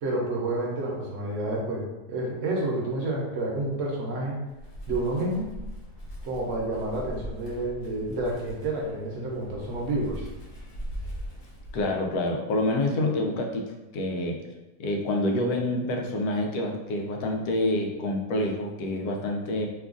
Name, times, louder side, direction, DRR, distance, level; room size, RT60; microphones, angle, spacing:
voice 1, 0.0-4.4 4.9-5.5 6.2-10.3, right 2 dB, 60° right, -2 dB, 1.0 m, -29 dB
Wind, 4.5-12.2, equal, 60° left, 1.2 m, -40 dB
voice 2, 11.7-13.6 13.9-14.4 14.8-19.7, left 1 dB, 90° left, 2 dB, 1.1 m, -27 dB
3.0 x 2.3 x 3.6 m, 1.1 s
omnidirectional pair, 1.6 m